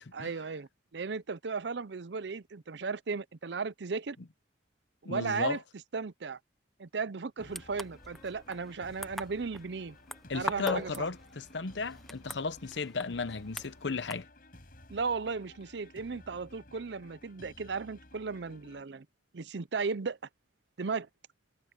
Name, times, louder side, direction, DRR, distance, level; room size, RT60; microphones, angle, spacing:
voice 1, 0.1-4.2 5.0-5.6 5.9-6.4 6.8-10.0 10.3-11.1 14.9-19.1 19.3-20.2 20.8-21.1, right 4 dB, 70° right, 0.6 m, -35 dB
voice 2, 5.0-5.6 10.3-14.3, left 4 dB, 80° left, 0.8 m, -35 dB
sound 1, 7.4-18.8, left 1 dB, 50° left, 7.0 m, -55 dB
sound 2, 7.4-14.2, equal, ahead, 0.7 m, -44 dB
head